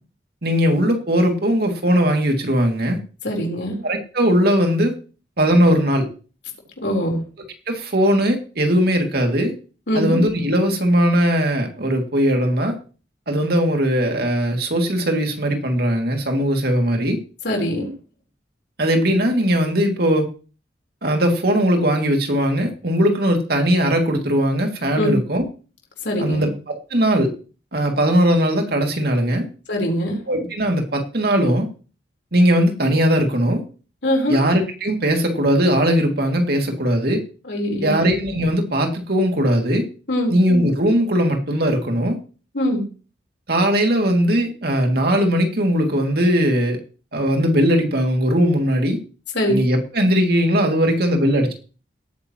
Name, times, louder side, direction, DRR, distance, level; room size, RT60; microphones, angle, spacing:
voice 1, 0.4-3.0 3.8-4.9 5.4-6.1 7.7-9.5 9.9-12.7 13.3-17.2 18.8-20.3 21.0-25.4 26.2-27.3 27.7-29.5 30.3-31.7 32.3-33.6 34.3-37.2 37.8-39.8 40.3-42.2 43.5-46.8 47.1-49.0 49.5-51.5, equal, 60° right, 3 dB, 2.5 m, -19 dB
voice 2, 3.2-3.8 6.8-7.2 9.9-10.2 17.4-17.9 25.0-25.2 26.0-26.5 29.7-30.2 34.0-34.4 37.4-38.0 40.1-40.4 42.5-42.8 49.3-49.5, equal, 70° left, 1 dB, 4.0 m, -22 dB
18.0 x 9.4 x 3.0 m, 0.36 s
head